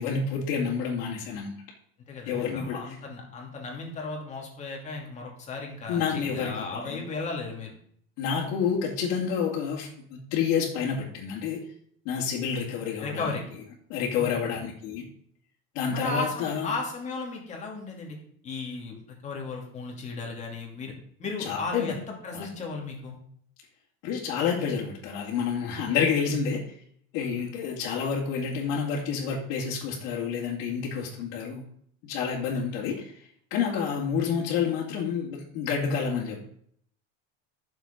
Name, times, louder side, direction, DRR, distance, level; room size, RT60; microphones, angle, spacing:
voice 1, 0.0-1.5 2.3-2.8 5.9-7.1 8.2-11.6 12.0-13.3 13.9-15.0 15.7-16.7 21.4-21.9 22.3-22.4 24.0-26.7 27.1-31.6 32.0-33.2 33.5-36.5, left 6 dB, 55° left, -6 dB, 2.6 m, -29 dB
voice 2, 2.0-7.8 13.0-13.4 14.2-14.6 15.9-18.2 18.4-20.9 21.2-23.2, left 3 dB, 25° left, 0 dB, 2.6 m, -35 dB
13.0 x 7.0 x 5.2 m, 0.64 s
cardioid pair, 175°, 30 cm